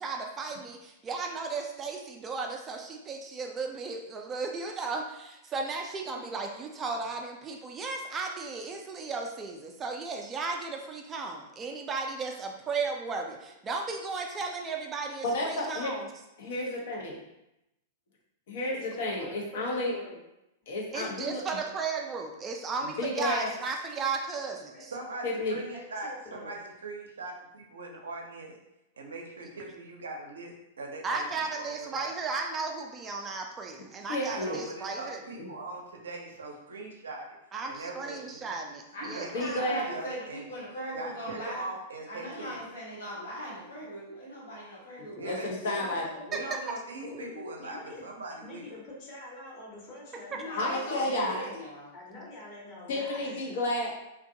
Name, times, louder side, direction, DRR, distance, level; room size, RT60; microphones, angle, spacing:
voice 1, 0.0-16.1 20.9-24.9 31.0-35.2 37.5-39.3 46.3-46.4, right 4 dB, 25° right, 2 dB, 0.3 m, -35 dB
voice 2, 15.2-15.9 16.4-17.1 18.5-19.9 20.7-21.6 22.8-23.5 25.2-25.6 34.1-34.6 35.4-35.5 39.3-39.9 45.0-46.1 50.6-51.4 52.9-53.9, left 1 dB, 65° left, -2 dB, 0.7 m, -31 dB
voice 3, 18.7-20.2 24.7-24.8 25.7-26.5 45.7-46.4 47.0-51.5 51.9-53.3, left 2 dB, 40° left, -4 dB, 1.0 m, -46 dB
voice 4, 24.9-28.5 29.0-31.3 31.5-32.1 34.3-37.3 37.7-38.4 39.0-40.4 40.9-42.6 45.2-45.7 46.3-47.8 48.0-48.7, right 2 dB, 80° right, 1 dB, 0.5 m, -41 dB
voice 5, 38.9-41.7 42.1-45.4 50.3-51.9, equal, 80° left, -5 dB, 1.1 m, -39 dB
2.5 x 2.2 x 2.7 m, 0.89 s
hypercardioid pair, 105°, 0 cm